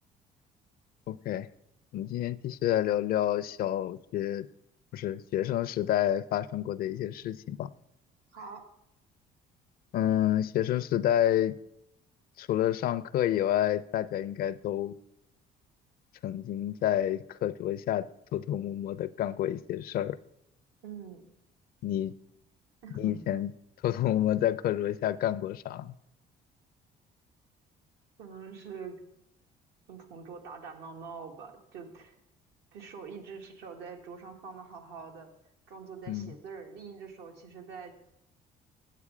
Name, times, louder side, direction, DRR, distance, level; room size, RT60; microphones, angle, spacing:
voice 1, 1.1-1.5 1.9-4.5 4.9-7.7 9.9-11.6 12.4-14.9 16.2-20.2 21.8-22.1 22.9-23.5 23.8-25.9 36.1-36.3, left 12 dB, 60° left, 0.5 m, -29 dB
voice 2, 8.3-8.6 20.8-21.3 22.8-23.2 28.2-29.0 29.9-32.2 32.7-35.3 35.7-37.9, right 5 dB, 85° right, 1.6 m, -44 dB
8.4 x 8.2 x 4.9 m
cardioid pair, 110°, 17 cm